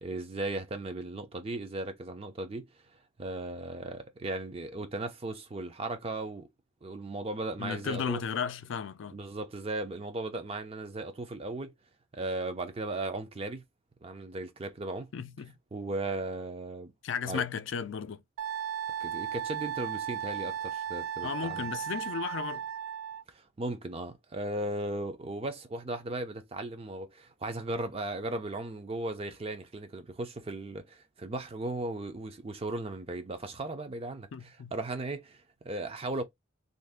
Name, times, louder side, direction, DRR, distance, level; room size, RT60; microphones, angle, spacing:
voice 1, 0.0-2.7 3.2-6.5 6.8-8.2 9.1-11.7 12.1-13.6 14.0-15.1 15.7-16.9 17.3-17.4 19.0-21.7 23.3-34.3 34.7-36.2, right 2 dB, 30° right, 0.5 m, -36 dB
voice 2, 7.6-9.2 15.1-15.5 17.0-18.2 21.2-22.6 34.3-34.7, left 6 dB, 65° left, 0.4 m, -34 dB
Wind instrument woodwind instrument, 18.4-23.2, right 9 dB, 85° right, 0.4 m, -35 dB
2.6 x 2.4 x 3.5 m
head